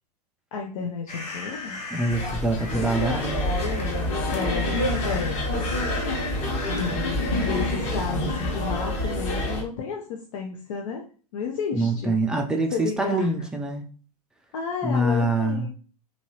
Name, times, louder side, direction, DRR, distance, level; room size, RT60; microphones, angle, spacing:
voice 1, 0.5-1.8 3.3-5.4 6.7-11.0 11.3-12.2 12.7-13.5 14.5-15.7, left 5 dB, 55° left, 1 dB, 0.5 m, -32 dB
sound 1, 1.1-8.5, left 3 dB, 80° left, 1.1 m, -39 dB
voice 2, 1.9-3.4 11.7-13.8 14.8-15.7, right 1 dB, 5° right, 3 dB, 0.4 m, -25 dB
sound 2, 2.1-9.6, left 1 dB, 35° left, 1.0 m, -27 dB
2.9 x 2.6 x 2.9 m, 0.40 s
figure-of-eight pair, 95°, 20 cm